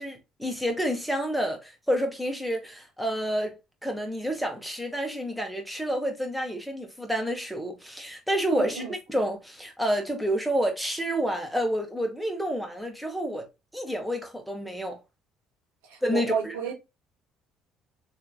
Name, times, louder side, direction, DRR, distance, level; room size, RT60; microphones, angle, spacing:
voice 1, 0.0-3.6 3.8-8.8 9.1-13.5 13.7-15.0 16.0-16.5, equal, ahead, 1.5 m, -29 dB
voice 2, 8.5-8.9 15.9-16.7, right 6 dB, 90° right, 1.0 m, -31 dB
3.8 x 3.2 x 2.2 m
supercardioid pair, 70°, 0 cm